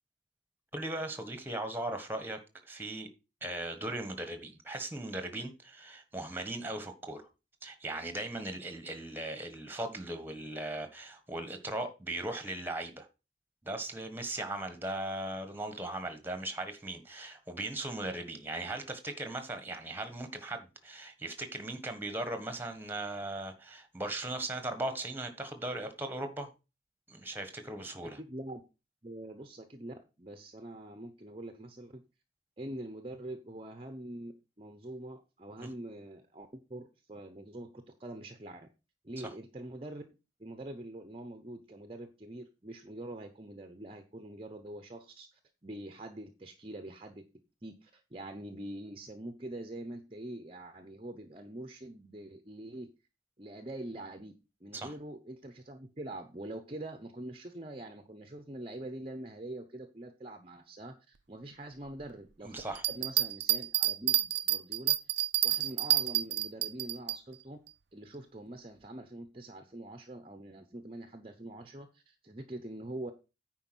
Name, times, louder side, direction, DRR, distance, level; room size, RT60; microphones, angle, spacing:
voice 1, 0.7-2.4 2.7-3.1 3.4-7.2 7.6-13.1 13.6-26.5 27.1-28.2 35.6-35.7 54.7-54.9 62.4-62.8, right 1 dB, 10° right, 1.4 m, -38 dB
voice 2, 28.0-28.6 29.0-32.0 32.6-34.3 34.6-38.7 39.0-40.0 40.4-47.2 47.6-52.9 53.4-54.3 54.6-62.6 62.9-65.0 65.4-67.6 67.9-73.1, right 1 dB, 30° right, 0.8 m, -44 dB
sound 1, 62.7-67.2, right 14 dB, 60° right, 0.5 m, -29 dB
9.5 x 4.7 x 6.2 m
head